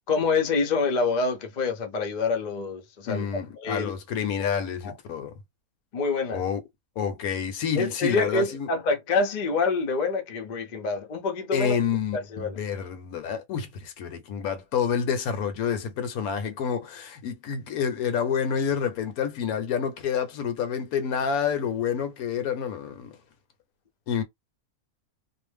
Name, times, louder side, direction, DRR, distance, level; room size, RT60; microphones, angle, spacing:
voice 1, 0.1-3.3 3.6-3.9 4.8-4.9 5.9-6.4 7.7-11.8 12.1-12.6, left 4 dB, 50° left, 0.5 m, -26 dB
voice 2, 3.1-5.3 6.3-6.6 7.0-8.7 11.5-23.1 24.1-24.2, left 7 dB, 75° left, 1.1 m, -28 dB
2.6 x 2.1 x 3.2 m
omnidirectional pair, 1.5 m